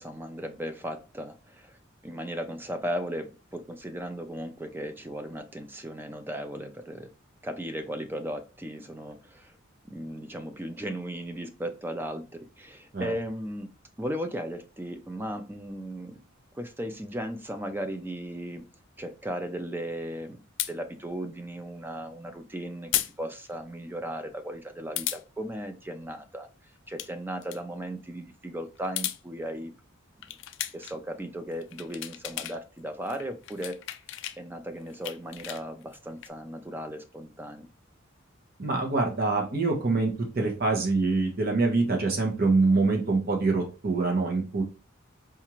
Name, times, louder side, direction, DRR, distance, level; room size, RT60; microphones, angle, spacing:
voice 1, 0.0-1.8 2.0-7.1 7.4-9.5 9.9-13.7 14.0-16.2 16.5-18.7 19.0-20.4 20.7-22.9 23.2-26.5 26.9-29.7 30.3-30.4 30.7-33.8 34.4-37.7, equal, 10° right, 7 dB, 0.4 m, -36 dB
sound 1, 20.6-20.7 22.9-23.1 23.5-23.6 25.0-25.2 26.8-27.1 27.4-27.6 28.8-29.2 30.2-31.0 31.5-32.6 32.9-34.4 34.8-36.3, left 14 dB, 65° left, 0.3 m, -34 dB
voice 2, 38.6-44.6, right 3 dB, 50° right, 1 dB, 0.9 m, -25 dB
4.4 x 2.4 x 3.0 m, 0.33 s
head